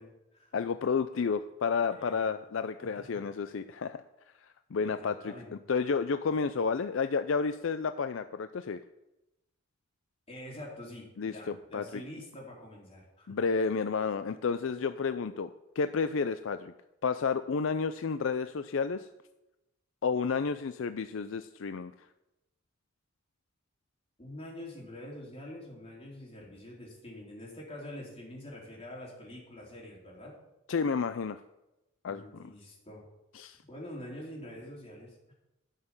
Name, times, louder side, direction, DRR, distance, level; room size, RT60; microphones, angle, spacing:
voice 1, 0.0-0.6 1.9-2.3 2.8-3.2 4.8-5.5 10.3-13.4 24.2-30.4 32.1-33.0 33.7-35.3, left 1 dB, 30° left, -3 dB, 4.0 m, -46 dB
voice 2, 0.5-4.0 4.7-5.3 5.7-8.8 11.2-11.8 13.3-15.5 15.8-16.7 17.0-19.1 20.0-21.9 30.7-31.4 32.0-32.5 33.4-33.6, left 5 dB, 70° left, 11 dB, 0.5 m, -31 dB
12.5 x 6.6 x 7.2 m, 0.94 s
head